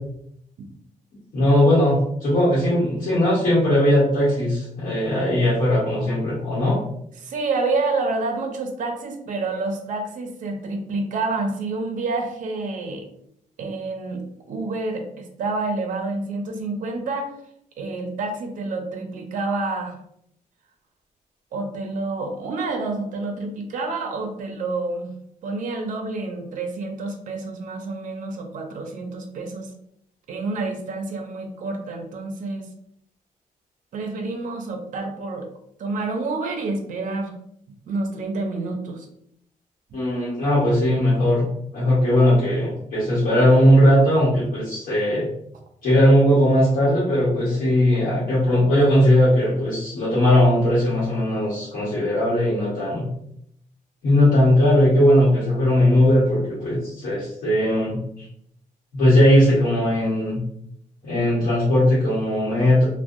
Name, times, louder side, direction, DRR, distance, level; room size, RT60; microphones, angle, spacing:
voice 1, 1.3-6.8 39.9-41.5 41.7-45.3 45.8-53.1 54.0-58.3 58.9-60.4 61.0-62.8, left 1 dB, 75° left, -8 dB, 1.0 m, -18 dB
voice 2, 7.2-13.1 13.6-17.3 17.8-20.0 21.5-25.1 25.4-29.7 30.3-32.7 33.9-35.5 35.8-37.3 37.9-39.1, right 3 dB, 65° right, 4 dB, 0.5 m, -28 dB
2.6 x 2.1 x 2.4 m, 0.73 s
wide cardioid pair, 135°, 14 cm